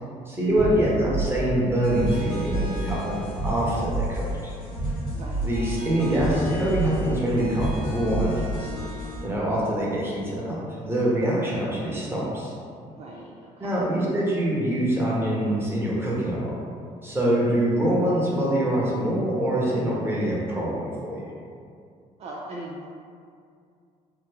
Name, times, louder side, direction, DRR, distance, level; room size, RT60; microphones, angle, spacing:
voice 1, 0.3-4.5 5.4-8.7 9.2-12.5 13.6-16.5 17.0-21.3, right 1 dB, 15° right, -6 dB, 1.1 m, -25 dB
sound 1, 0.6-8.8, right 1 dB, 90° right, 0.8 m, -30 dB
sound 2, 1.8-9.2, equal, 75° left, 1.3 m, -38 dB
voice 2, 5.1-5.4 12.9-13.8 22.2-22.9, right 1 dB, 40° right, -3 dB, 0.4 m, -40 dB
3.3 x 2.1 x 3.4 m, 2.3 s
supercardioid pair, 65°, 16 cm